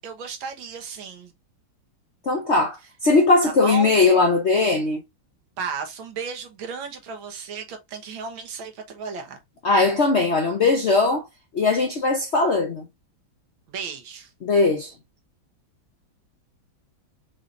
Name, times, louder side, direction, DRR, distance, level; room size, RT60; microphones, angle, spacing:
voice 1, 0.0-1.3 3.4-3.9 5.6-9.4 13.7-14.3, right 5 dB, 75° right, 1.8 m, -34 dB
voice 2, 2.2-5.0 9.6-11.2 11.5-12.8 14.4-14.9, left 3 dB, 60° left, 0.7 m, -19 dB
5.5 x 3.2 x 2.5 m
omnidirectional pair, 2.2 m